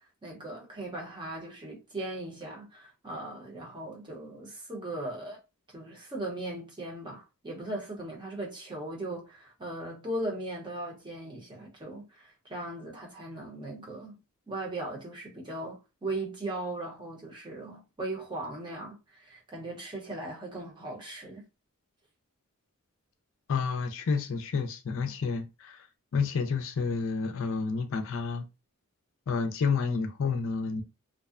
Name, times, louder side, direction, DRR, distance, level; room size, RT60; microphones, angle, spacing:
voice 1, 0.2-5.4 5.7-14.1 14.5-21.5, right 1 dB, 20° right, 0.7 m, -38 dB
voice 2, 23.5-25.9 26.1-28.4 29.3-30.8, left 5 dB, 65° left, 0.4 m, -30 dB
2.5 x 2.0 x 2.4 m
head